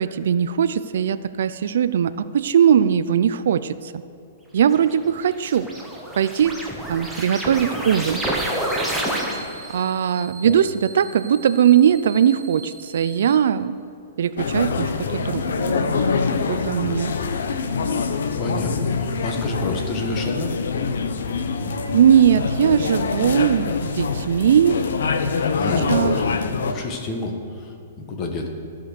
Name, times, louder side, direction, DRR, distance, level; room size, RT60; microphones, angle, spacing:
voice 1, 0.0-4.0 4.5-5.7 6.2-6.5 6.9-8.2 9.7-13.8 14.2-15.9 16.5-17.1 21.9-24.8 25.9-26.1, right 9 dB, 70° right, 14 dB, 0.4 m, -19 dB
sound 1, 4.8-9.7, right 1 dB, ahead, 1.2 m, -28 dB
sound 2, 8.4-13.4, right 4 dB, 30° right, 1.4 m, -42 dB
sound 3, 14.4-26.7, left 5 dB, 85° left, 0.8 m, -25 dB
voice 2, 18.4-20.6 25.6-26.3 26.6-28.5, left 2 dB, 25° left, 3 dB, 1.4 m, -29 dB
15.0 x 5.2 x 6.5 m, 2.5 s
hypercardioid pair, 155°, 0 cm